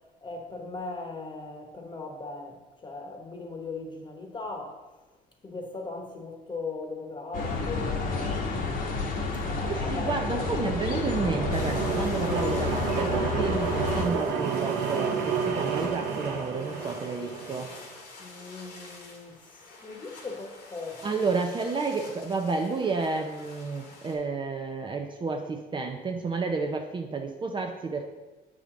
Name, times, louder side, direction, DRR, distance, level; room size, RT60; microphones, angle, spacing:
voice 1, 0.2-4.8 5.4-8.8 9.4-10.8 18.2-21.2, left 3 dB, 30° left, 1.2 m, -39 dB
sound 1, 7.3-14.1, left 4 dB, 55° left, 1.2 m, -30 dB
voice 2, 9.7-17.7 21.0-28.1, right 4 dB, 30° right, 0.6 m, -31 dB
sound 2, 9.9-17.8, right 5 dB, 85° right, 0.9 m, -30 dB
sound 3, 11.5-24.1, left 3 dB, 80° left, 1.7 m, -48 dB
8.0 x 4.9 x 3.8 m
cardioid pair, 110°, 17 cm